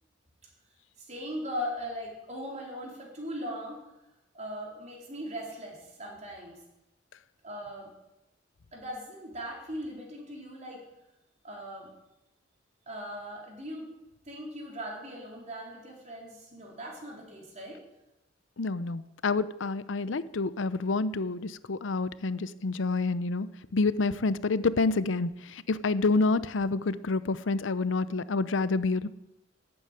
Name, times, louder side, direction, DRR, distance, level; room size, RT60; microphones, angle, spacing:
voice 1, 1.0-3.8 4.3-6.6 7.4-7.9 8.7-10.8 11.4-11.9 12.9-13.9 14.3-17.8, equal, 40° right, -1 dB, 4.1 m, -39 dB
voice 2, 18.6-23.5 23.7-29.1, left 3 dB, 80° left, 16 dB, 0.6 m, -28 dB
12.5 x 8.7 x 9.2 m, 0.95 s
head